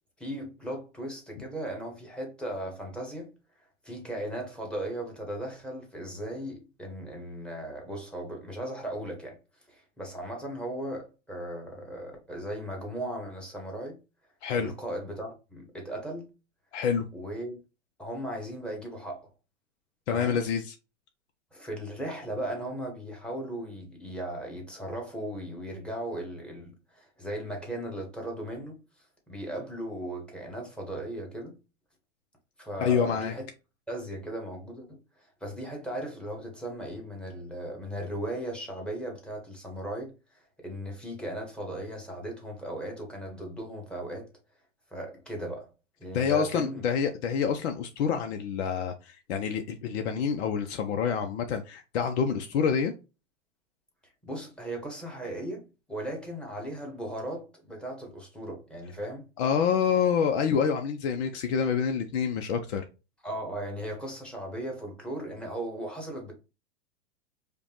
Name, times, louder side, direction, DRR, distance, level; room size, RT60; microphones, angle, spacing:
voice 1, 0.2-9.4 9.7-14.0 14.5-16.3 17.1-17.5 18.0-19.3 20.1-20.4 21.5-31.6 32.6-33.5 33.9-44.3 44.9-45.7 46.0-46.8 54.2-59.3 63.2-66.3, right 1 dB, 5° left, 1.3 m, -37 dB
voice 2, 14.4-14.7 16.7-17.1 20.1-20.7 32.8-33.3 46.1-52.9 59.4-62.9, left 7 dB, 60° left, 0.6 m, -27 dB
5.0 x 2.3 x 3.0 m
hypercardioid pair, 110°, 36 cm